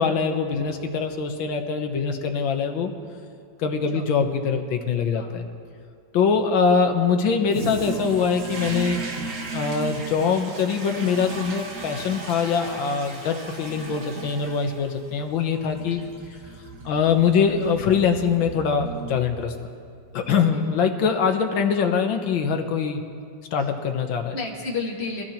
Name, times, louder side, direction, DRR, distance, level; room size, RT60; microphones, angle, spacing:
voice 1, 0.0-2.9 3.6-5.5 6.1-9.0 9.5-16.0 16.9-19.5 20.1-23.0 23.5-24.3, left 6 dB, 90° left, 5 dB, 1.8 m, -23 dB
voice 2, 5.1-5.4 20.2-20.7 23.6-23.7 24.3-25.2, left 3 dB, 35° left, -3 dB, 2.2 m, -33 dB
Toilet flush, 7.5-19.8, right 3 dB, 60° right, 1.9 m, -36 dB
23.5 x 15.5 x 3.0 m, 2.4 s
omnidirectional pair, 2.1 m